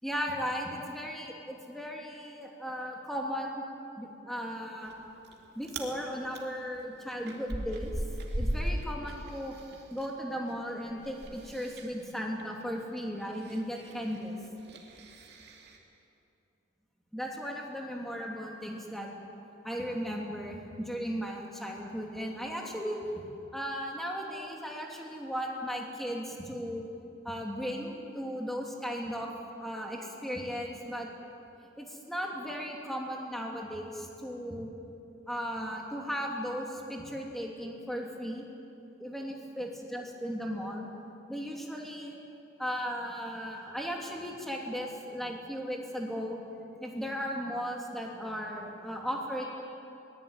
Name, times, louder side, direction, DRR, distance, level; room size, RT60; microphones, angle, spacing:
voice 1, 0.0-3.6 4.0-4.9 5.5-7.9 8.3-9.6 9.9-14.4 17.1-19.1 19.6-23.0 23.5-26.9 27.2-29.3 29.6-31.1 31.8-34.7 35.3-38.4 39.0-40.9 41.3-42.2 42.6-46.4 46.8-49.4, equal, ahead, -1 dB, 3.0 m, -36 dB
Chewing mastication, 4.9-5.3 5.6-5.9 6.3-10.1 10.4-15.8, right 1 dB, 55° right, 2.7 m, -38 dB
22.5 x 19.0 x 9.1 m, 2.7 s
head